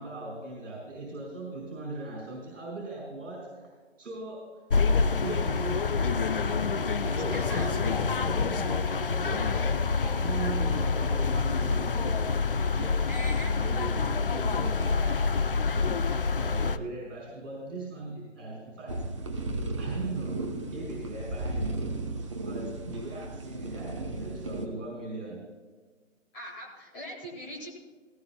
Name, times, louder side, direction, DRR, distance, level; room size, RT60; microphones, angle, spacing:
voice 1, 0.0-3.7 4.0-4.7 5.2-6.5 7.0-12.2 12.7-19.2 19.8-22.0 22.4-25.5, right 3 dB, 70° right, -2 dB, 4.7 m, -39 dB
sound 1, 4.7-16.8, left 4 dB, 45° left, 0.5 m, -27 dB
voice 2, 7.2-7.7 13.1-13.5 26.3-27.7, equal, 5° left, -4 dB, 1.0 m, -40 dB
sound 2, 18.9-24.6, right 2 dB, 25° right, 0.8 m, -35 dB
18.0 x 16.5 x 2.2 m, 1.4 s
hypercardioid pair, 170°, 39 cm